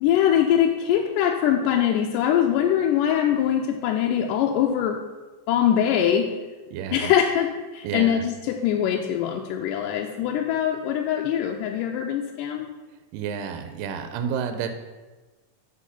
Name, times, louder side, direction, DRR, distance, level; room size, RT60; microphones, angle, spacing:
voice 1, 0.0-5.0 5.5-6.4 6.9-12.7, left 9 dB, 80° left, 2 dB, 2.1 m, -22 dB
voice 2, 6.7-7.1 7.8-8.2 13.1-14.7, right 7 dB, 90° right, 7 dB, 2.3 m, -30 dB
6.3 x 5.2 x 5.6 m, 1.2 s
omnidirectional pair, 3.9 m